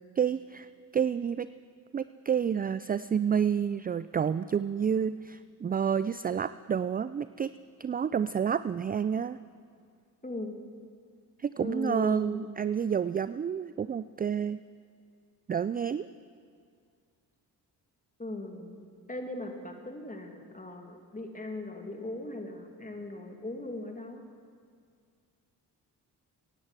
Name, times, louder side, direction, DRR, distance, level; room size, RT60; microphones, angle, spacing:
voice 1, 0.2-0.7 0.9-1.5 1.9-7.5 7.8-9.4 11.4-14.6 15.5-16.1, right 7 dB, 25° right, 15 dB, 0.3 m, -29 dB
voice 2, 10.2-10.6 11.6-12.5 18.2-18.8 19.1-24.2, left 2 dB, 20° left, 4 dB, 2.4 m, -39 dB
17.0 x 10.0 x 7.4 m, 2.2 s
supercardioid pair, 55°, 41 cm